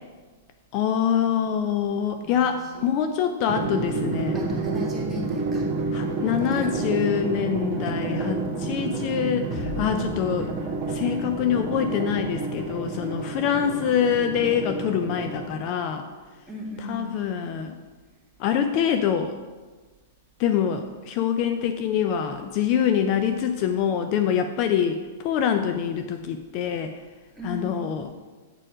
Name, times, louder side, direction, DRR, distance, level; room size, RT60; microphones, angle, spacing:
voice 1, 0.7-4.4 5.9-10.5 10.9-16.0 16.8-17.8 18.4-19.3 20.4-26.9 27.4-28.1, left 8 dB, 45° left, 7 dB, 0.5 m, -25 dB
voice 2, 2.2-2.9 3.6-3.9 4.3-5.6 6.5-6.9 16.5-17.1 27.3-27.8, equal, 10° right, -4 dB, 2.1 m, -37 dB
Drum, 3.5-15.8, right 3 dB, 40° right, 1.4 m, -29 dB
sound 1, 9.5-12.8, left 2 dB, 20° left, 1.1 m, -40 dB
8.8 x 4.4 x 4.9 m, 1.3 s
hypercardioid pair, 115°, 0 cm